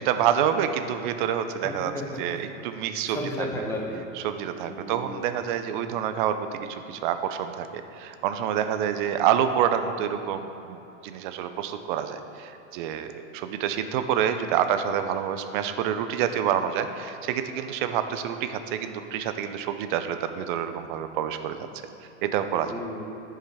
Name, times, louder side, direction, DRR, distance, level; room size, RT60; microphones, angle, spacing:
voice 1, 0.0-1.9 2.2-3.5 4.1-21.7 22.2-22.7, right 9 dB, 40° right, 9 dB, 0.6 m, -27 dB
voice 2, 1.6-2.4 3.1-4.0 4.6-5.2 22.7-23.1, left 1 dB, 5° left, -2 dB, 0.9 m, -34 dB
10.0 x 5.6 x 4.8 m, 3.0 s
hypercardioid pair, 145°, 40 cm